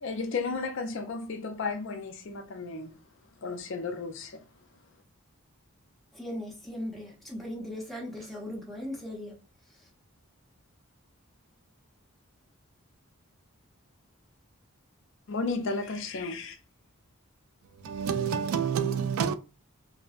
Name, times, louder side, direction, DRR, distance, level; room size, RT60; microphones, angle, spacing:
voice 1, 0.0-2.9 3.4-4.5 15.3-16.6, left 4 dB, 60° left, 0.4 m, -33 dB
voice 2, 6.1-9.4, left 1 dB, ahead, 0.6 m, -38 dB
voice 3, 17.8-19.3, right 7 dB, 80° right, 0.3 m, -28 dB
2.5 x 2.1 x 2.4 m
head